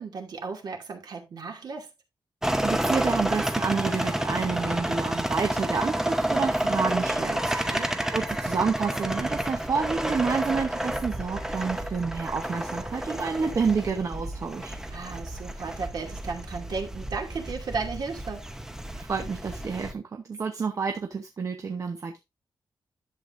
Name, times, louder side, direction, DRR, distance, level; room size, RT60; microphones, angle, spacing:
voice 1, 0.0-1.9 7.5-8.0 14.9-18.4, right 4 dB, 55° right, 2.5 m, -35 dB
sound 1, 2.4-19.9, right 1 dB, 5° right, 0.8 m, -30 dB
voice 2, 2.6-14.8 19.0-22.2, right 5 dB, 40° right, 0.9 m, -29 dB
11.5 x 7.7 x 2.6 m
wide cardioid pair, 175°, 8 cm